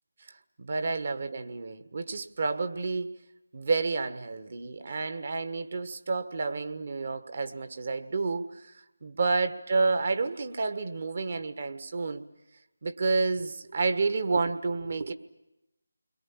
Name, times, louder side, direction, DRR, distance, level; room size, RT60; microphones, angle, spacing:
voice 1, 0.6-3.2 3.5-8.7 9.0-12.2 12.8-15.1, right 3 dB, 45° right, 8 dB, 1.5 m, -30 dB
29.5 x 22.5 x 7.4 m, 0.92 s
figure-of-eight pair, 160°, 0 cm